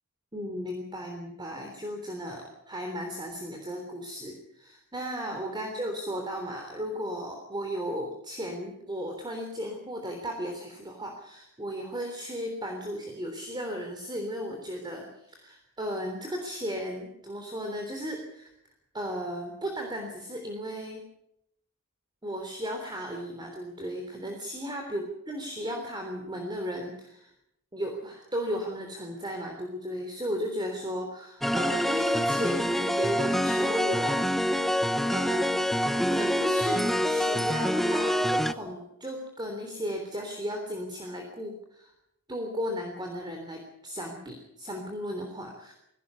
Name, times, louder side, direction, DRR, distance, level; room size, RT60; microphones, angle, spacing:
voice 1, 0.3-18.5 18.9-21.0 22.2-27.3 27.7-34.2 35.1-35.6 36.1-41.9 42.3-45.7, equal, 20° right, 3 dB, 3.4 m, -35 dB
sound 1, 31.4-38.5, equal, ahead, 0.8 m, -26 dB
21.0 x 17.5 x 8.4 m, 0.78 s
head